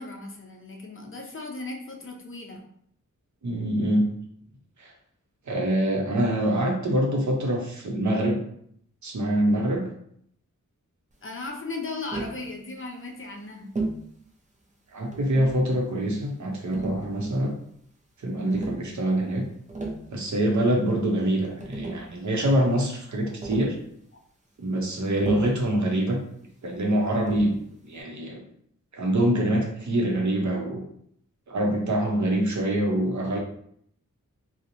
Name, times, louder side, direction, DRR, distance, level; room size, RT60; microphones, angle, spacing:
voice 1, 0.0-2.7 11.2-13.7, left 3 dB, 40° left, 1 dB, 0.4 m, -37 dB
voice 2, 3.4-4.1 4.8-4.9 5.5-8.4 9.0-9.9 14.9-17.6 18.2-19.4 20.1-23.8 24.6-26.2 26.6-27.6 27.8-28.4 28.9-30.8 31.5-33.4, right 1 dB, 65° right, 1 dB, 0.6 m, -25 dB
Tap, 12.1-12.4 13.8-14.1 15.1-15.7 16.7-17.5 18.5-18.8 19.5-20.1 21.2-21.3 21.6-22.1 23.4-23.8 25.2-25.6 27.3-27.6, right 2 dB, 25° right, 0.5 m, -33 dB
2.8 x 2.0 x 2.6 m, 0.67 s
wide cardioid pair, 95°, 32 cm